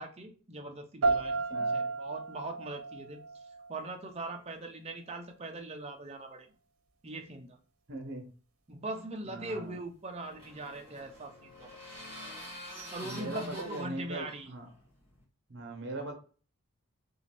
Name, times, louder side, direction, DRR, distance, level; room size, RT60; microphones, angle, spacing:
voice 1, 0.0-3.2 3.7-6.5 7.0-7.6 8.7-11.8 12.8-14.5, right 2 dB, 30° right, 4 dB, 0.5 m, -41 dB
sound 1, 1.0-4.0, right 3 dB, 80° right, 0.7 m, -32 dB
voice 2, 1.5-1.8 7.9-8.3 9.3-9.7 13.0-14.7 15.5-16.1, right 2 dB, 50° right, 3 dB, 0.9 m, -40 dB
sound 2, 9.7-15.2, left 1 dB, 25° left, 1.4 m, -47 dB
3.0 x 2.7 x 4.3 m, 0.38 s
head